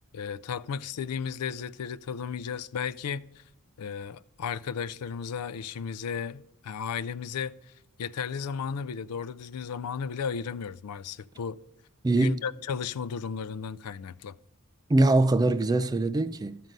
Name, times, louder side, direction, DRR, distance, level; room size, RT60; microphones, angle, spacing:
voice 1, 0.1-3.4 3.8-7.6 8.0-11.6 12.1-14.4, left 6 dB, 85° left, 0.4 m, -34 dB
voice 2, 12.0-12.4 14.9-16.6, right 2 dB, 15° right, 0.3 m, -23 dB
12.5 x 7.6 x 5.2 m
head